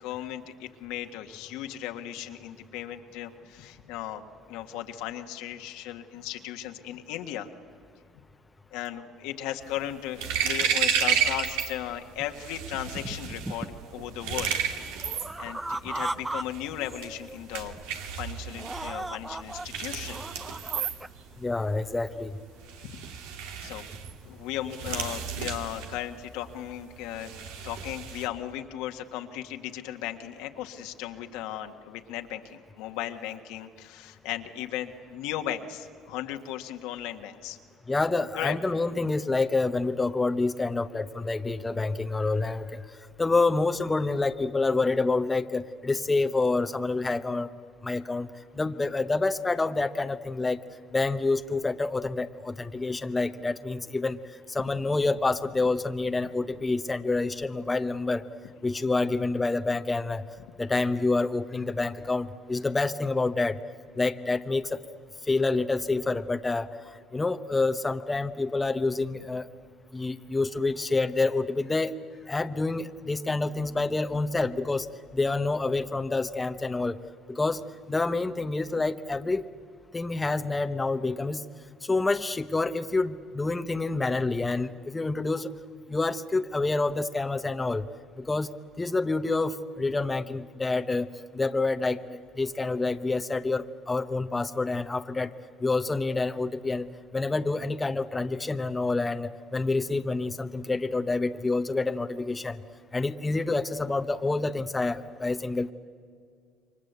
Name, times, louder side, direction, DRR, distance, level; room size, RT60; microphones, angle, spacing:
voice 1, 0.0-4.2 4.5-7.5 8.7-14.5 15.4-17.7 18.1-20.2 23.6-23.9 24.2-27.3 27.6-37.6 38.3-38.6, left 12 dB, 80° left, 5 dB, 1.7 m, -36 dB
sound 1, 9.6-11.8 12.0-28.3, right 7 dB, 85° right, 2.2 m, -32 dB
sound 2, 12.2-12.3 12.7-13.9 14.2-16.4 16.7-17.4 17.8-18.0 18.5-19.7 20.0-21.1, right 2 dB, 10° right, 0.8 m, -37 dB
voice 2, 21.4-22.4 37.9-42.9 43.2-47.5 47.8-50.6 50.9-54.2 54.5-58.2 58.6-60.2 60.6-63.6 63.9-64.8 65.2-66.7 67.1-69.5 69.9-71.9 72.3-77.0 77.3-77.6 77.9-79.5 79.9-81.4 81.8-85.5 85.9-87.9 88.2-95.3 95.6-102.6 102.9-105.7, left 3 dB, 15° left, 8 dB, 1.0 m, -28 dB
29.0 x 24.0 x 8.2 m, 2.1 s
supercardioid pair, 85°, 0 cm